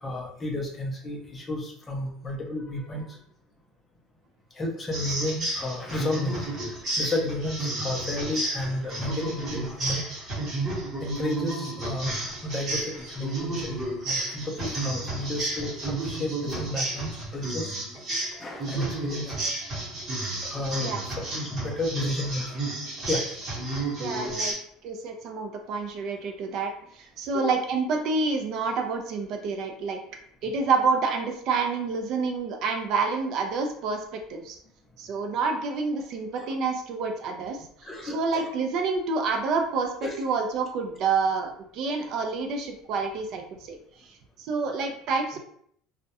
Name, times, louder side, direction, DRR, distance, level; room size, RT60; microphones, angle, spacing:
voice 1, 0.0-3.2 4.6-6.6 7.0-10.0 11.0-17.7 18.1-19.5 20.4-22.4 23.1-23.2 27.3-27.5 36.4-36.5 37.8-38.5 40.0-40.1, left 1 dB, 15° left, 0 dB, 0.4 m, -32 dB
sound 1, 4.9-24.5, right 2 dB, 25° right, 0.9 m, -32 dB
voice 2, 24.0-24.5 24.8-30.0 30.4-34.6 35.0-39.9 40.2-43.8 44.0-45.4, right 4 dB, 50° right, 4 dB, 0.3 m, -28 dB
2.2 x 2.0 x 2.7 m, 0.66 s
cardioid pair, 155°, 0 cm